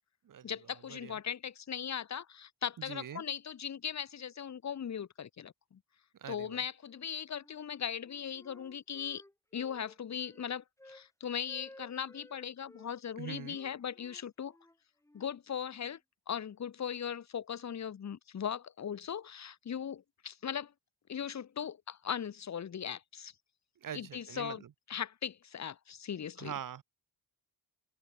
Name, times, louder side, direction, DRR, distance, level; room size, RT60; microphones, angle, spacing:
voice 1, 0.4-5.8 6.3-9.2 9.5-14.6 15.1-16.0 16.3-20.7 21.1-23.3 23.9-26.5, left 8 dB, 40° left, 0.7 m, -39 dB
voice 2, 2.9-3.2 6.2-6.6 13.2-13.6 23.8-24.6 26.4-26.8, right 9 dB, 50° right, 0.6 m, -43 dB
Wind instrument woodwind instrument, 6.8-7.7 8.0-11.1 11.4-12.9 13.5-16.0, left 1 dB, 5° left, 1.3 m, -57 dB
open air
wide cardioid pair, 100°, 44 cm